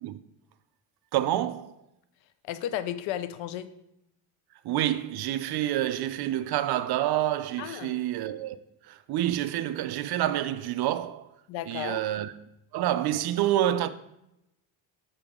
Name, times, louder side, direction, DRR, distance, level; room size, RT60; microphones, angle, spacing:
voice 1, 1.1-1.7 4.6-8.6 8.8-11.3 11.6-12.3 12.7-13.9, right 12 dB, 55° right, 0.6 m, -28 dB
voice 2, 2.4-3.7 7.6-8.0 11.5-12.0, left 11 dB, 75° left, 0.7 m, -33 dB
6.9 x 6.8 x 3.6 m
cardioid pair, 120°, 46 cm